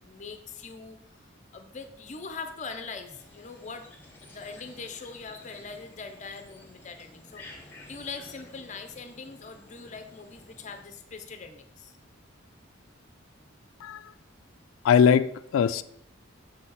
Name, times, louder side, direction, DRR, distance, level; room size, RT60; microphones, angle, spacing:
voice 1, 0.0-1.2 1.5-3.9 4.2-7.4 7.9-11.9, left 4 dB, 35° left, 0.6 m, -42 dB
sound 1, 3.1-10.8, left 2 dB, 10° left, 1.2 m, -51 dB
voice 2, 13.8-14.1 14.8-15.8, left 7 dB, 80° left, 0.3 m, -21 dB
6.5 x 4.1 x 4.0 m
head